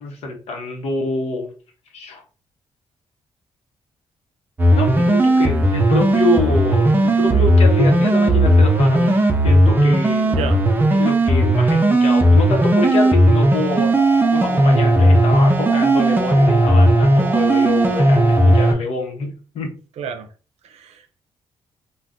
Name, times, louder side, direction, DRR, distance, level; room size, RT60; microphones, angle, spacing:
voice 1, 0.0-1.5 1.9-2.2 4.8-9.2 9.4-10.3 10.9-19.7, left 2 dB, 85° left, 0.8 m, -25 dB
sound 1, 4.6-18.7, right 1 dB, 20° right, 0.4 m, -15 dB
voice 2, 10.3-10.7 20.0-20.3 20.6-21.3, right 7 dB, 85° right, 0.5 m, -30 dB
sound 2, 13.7-18.7, left 1 dB, 25° left, 0.7 m, -28 dB
2.5 x 2.2 x 3.5 m
wide cardioid pair, 150°, 11 cm